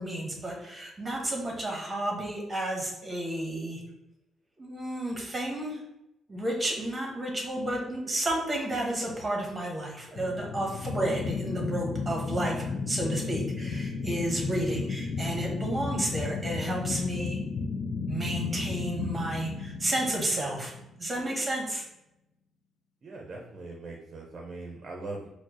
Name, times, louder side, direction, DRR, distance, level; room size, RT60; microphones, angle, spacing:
voice 1, 0.0-3.8 4.6-5.8 6.3-17.4 18.1-20.7 21.0-21.8, right 1 dB, 25° right, 0 dB, 1.0 m, -31 dB
sound 1, 10.1-21.1, left 4 dB, 65° left, 0.3 m, -33 dB
voice 2, 23.0-25.3, right 2 dB, 45° right, 0 dB, 0.6 m, -40 dB
4.4 x 2.1 x 2.9 m, 0.89 s
cardioid pair, 90°, 0 cm